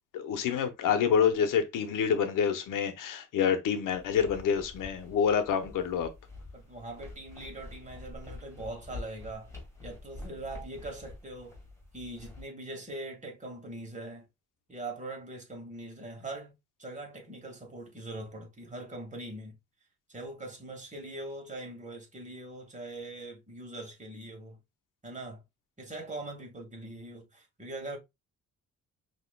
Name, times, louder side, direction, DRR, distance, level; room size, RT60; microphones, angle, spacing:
voice 1, 0.1-6.1, left 7 dB, 85° left, 0.9 m, -27 dB
sound 1, 3.9-12.4, left 2 dB, 10° left, 2.1 m, -47 dB
voice 2, 6.5-9.5 9.8-11.6 11.9-14.3 14.7-16.5 16.8-19.6 20.1-24.6 25.0-25.4 25.8-28.0, right 2 dB, 25° right, 2.0 m, -42 dB
5.8 x 3.0 x 2.3 m
cardioid pair, 115°, 31 cm